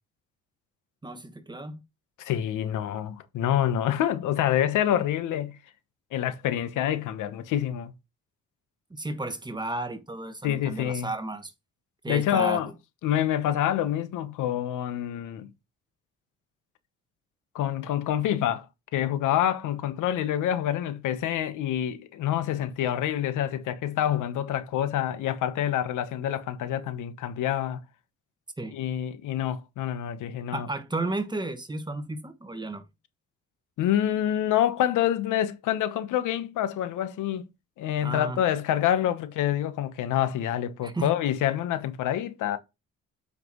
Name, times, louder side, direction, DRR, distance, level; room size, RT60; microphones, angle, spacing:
voice 1, 1.0-1.8 8.9-11.5 12.0-12.6 28.6-28.8 30.5-32.8 38.0-38.4 40.8-41.1, right 2 dB, 15° right, 1.3 m, -33 dB
voice 2, 2.2-5.5 6.1-7.9 10.4-11.1 12.1-12.7 13.0-15.5 17.5-18.7 18.9-27.8 28.7-30.7 33.8-37.5 37.8-42.6, left 11 dB, 85° left, 1.1 m, -27 dB
8.1 x 5.8 x 3.0 m
cardioid pair, 90°, 30 cm